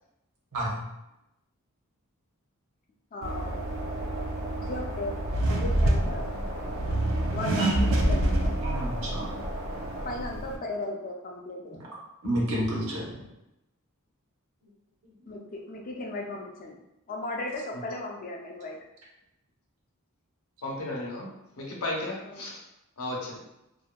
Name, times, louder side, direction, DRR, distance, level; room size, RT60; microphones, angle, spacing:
voice 1, 0.5-0.8 8.6-9.3 12.2-13.1 15.0-15.4, right 1 dB, 80° right, -3 dB, 0.8 m, -30 dB
voice 2, 3.1-3.7 4.0-4.1 4.6-6.3 7.3-8.6 10.0-11.8 15.3-16.8 17.1-18.8 22.2-22.5, left 2 dB, 40° left, 1 dB, 0.4 m, -36 dB
sound 1, 3.2-10.2, right 1 dB, 45° right, 0.7 m, -39 dB
Accelerating revving vroom, 3.2-10.6, right 1 dB, 65° right, 0.4 m, -28 dB
voice 3, 20.6-21.3 21.6-22.6 23.0-23.4, left 1 dB, 75° left, -2 dB, 0.6 m, -34 dB
2.6 x 2.1 x 2.2 m, 0.90 s
head